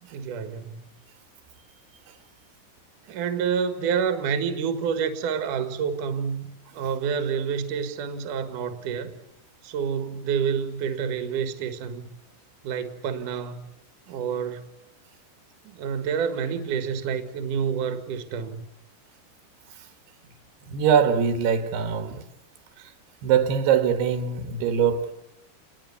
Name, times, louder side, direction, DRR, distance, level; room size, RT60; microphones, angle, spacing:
voice 1, 0.1-0.8 3.1-9.1 9.6-12.1 12.6-13.7 14.1-14.7 15.6-18.6, right 7 dB, 60° right, 2.8 m, -28 dB
voice 2, 20.6-22.3 22.8-22.9 23.2-25.1, right 7 dB, 80° right, 3.5 m, -23 dB
29.0 x 20.5 x 7.0 m
omnidirectional pair, 4.6 m